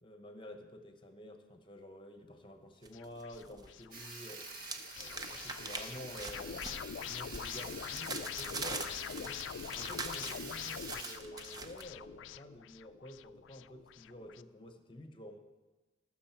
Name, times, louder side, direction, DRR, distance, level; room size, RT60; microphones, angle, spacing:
voice 1, 0.0-4.5 4.9-9.4 9.7-15.4, left 1 dB, 25° left, 7 dB, 0.9 m, -50 dB
sound 1, 2.8-3.7 4.0-11.8, right 3 dB, 20° right, 0.5 m, -44 dB
sound 2, 2.9-14.4, left 9 dB, 85° left, 0.3 m, -45 dB
Sawing, 3.9-11.2, right 3 dB, 50° right, 1.2 m, -48 dB
19.0 x 6.4 x 4.5 m, 1.2 s
head